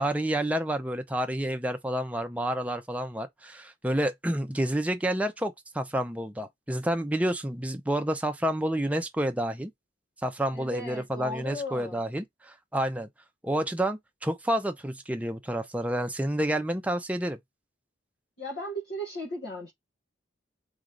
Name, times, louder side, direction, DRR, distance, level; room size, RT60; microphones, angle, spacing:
voice 1, 0.0-9.7 10.2-13.1 13.4-17.4, right 1 dB, 10° right, 0.6 m, -29 dB
voice 2, 10.5-12.0 18.4-19.7, equal, 60° left, 1.4 m, -36 dB
4.0 x 3.2 x 3.8 m
head